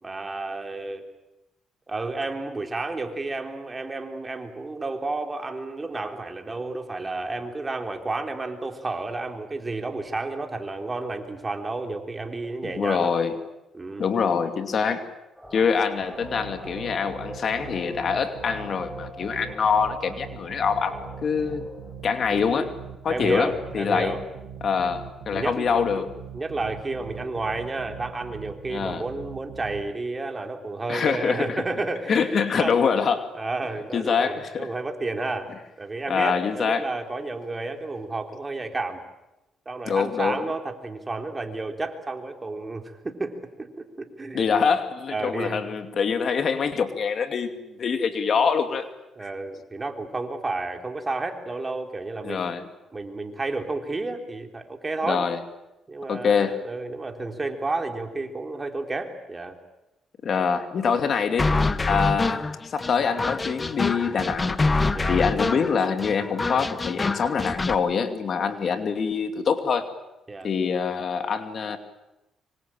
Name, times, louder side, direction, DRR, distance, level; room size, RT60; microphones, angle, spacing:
voice 1, 0.0-1.0 1.9-13.1 13.7-14.1 22.3-22.6 23.1-24.2 25.3-25.7 26.3-32.2 32.5-32.7 33.3-35.5 35.8-39.0 39.7-44.6 45.1-45.6 49.2-52.5 52.9-55.2 55.9-59.6 61.9-62.2 64.9-65.2 70.3-70.5, right 3 dB, 25° right, 4 dB, 3.8 m, -31 dB
voice 2, 12.6-13.3 14.0-15.1 15.5-20.9 21.2-21.6 22.0-22.7 23.0-24.2 24.6-26.1 28.7-29.0 30.9-31.6 32.1-33.3 33.9-34.7 36.1-36.9 39.9-40.4 44.3-47.5 47.8-48.9 52.2-52.6 55.0-55.4 56.1-56.6 60.2-61.6 61.9-64.6 65.1-69.9 70.4-71.8, left 6 dB, 55° left, 7 dB, 2.6 m, -25 dB
sound 1, 15.4-21.9, equal, 5° left, 6.4 m, -42 dB
sound 2, 16.2-29.8, right 8 dB, 90° right, 4.1 m, -42 dB
sound 3, 61.4-67.8, left 3 dB, 25° left, 1.2 m, -26 dB
25.5 x 24.5 x 8.8 m, 0.97 s
cardioid pair, 90°, 0 cm